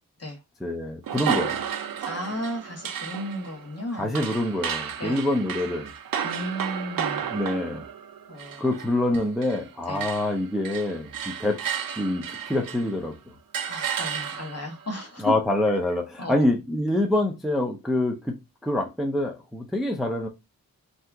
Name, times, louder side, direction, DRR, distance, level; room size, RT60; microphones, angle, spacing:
voice 1, 0.6-1.6 4.0-5.9 7.3-7.8 8.6-13.2 15.2-20.3, left 1 dB, ahead, 0.4 m, -26 dB
sound 1, 1.0-9.7 10.0-13.0 13.5-14.7, right 8 dB, 70° right, 0.5 m, -33 dB
voice 2, 2.0-4.1 5.0-5.2 6.2-7.2 8.3-8.7 9.9-10.0 13.6-15.3 16.2-16.4, equal, 45° left, 1.0 m, -34 dB
2.7 x 2.4 x 3.4 m
wide cardioid pair, 115°, 35 cm